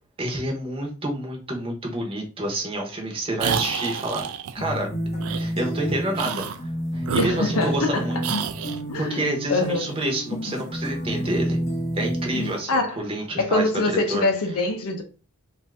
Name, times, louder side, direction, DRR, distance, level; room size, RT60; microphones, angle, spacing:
voice 1, 0.2-4.3 4.5-4.9 5.4-6.5 6.9-8.2 9.0-11.6 11.9-13.6 14.1-14.2, right 1 dB, 25° right, 0.8 m, -28 dB
sound 1, 3.4-4.5 5.2-5.5 6.1-6.6 7.0-7.9 8.2-8.8, right 7 dB, 80° right, 0.4 m, -29 dB
sound 2, 4.6-12.6, equal, 30° left, 0.7 m, -29 dB
voice 2, 7.2-8.1 8.9-9.2 9.5-9.9 12.7-13.0 13.4-15.0, left 2 dB, 85° left, 0.6 m, -24 dB
2.7 x 2.5 x 3.2 m
head